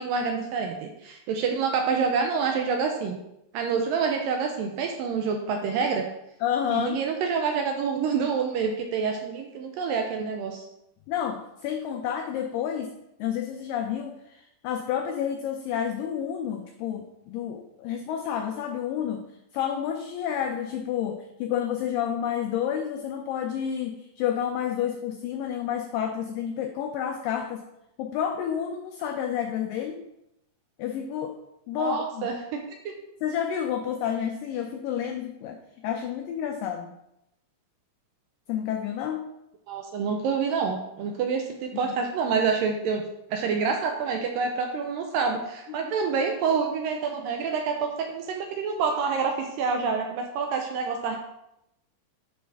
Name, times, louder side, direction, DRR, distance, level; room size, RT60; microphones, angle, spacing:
voice 1, 0.0-3.2 3.5-6.1 6.7-10.7 31.8-32.9 39.7-43.0 43.3-51.2, right 5 dB, 80° right, 3 dB, 2.0 m, -27 dB
voice 2, 6.4-7.0 11.1-12.9 13.2-19.3 19.5-27.7 28.0-30.1 30.8-31.4 31.7-32.3 33.2-36.9 38.5-39.3 41.7-42.0 45.8-45.9, left 9 dB, 90° left, 5 dB, 1.9 m, -30 dB
9.4 x 4.3 x 3.4 m, 0.84 s
omnidirectional pair, 4.4 m